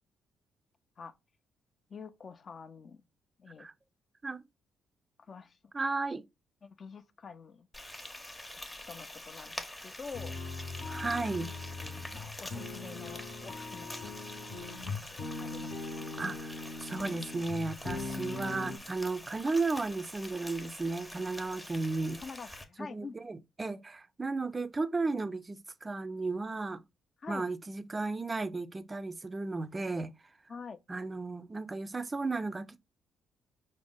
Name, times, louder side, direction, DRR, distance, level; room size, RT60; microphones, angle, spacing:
voice 1, 1.9-3.0 3.4-3.7 5.3-5.6 6.6-7.7 8.4-9.6 9.8-10.4 11.9-13.9 14.5-15.7 15.9-16.1 22.2-23.1 27.2-27.5 30.5-30.8, left 5 dB, 45° left, 0.4 m, -47 dB
voice 2, 5.7-6.2 10.9-11.5 16.2-22.2 22.8-26.8 27.3-30.1 30.9-32.8, right 3 dB, 25° right, 0.4 m, -34 dB
Frying (food), 7.7-22.6, left 1 dB, 10° left, 0.7 m, -46 dB
sound 1, 10.1-18.8, left 3 dB, 60° left, 0.9 m, -40 dB
4.9 x 2.0 x 3.7 m
cardioid pair, 90°, 0 cm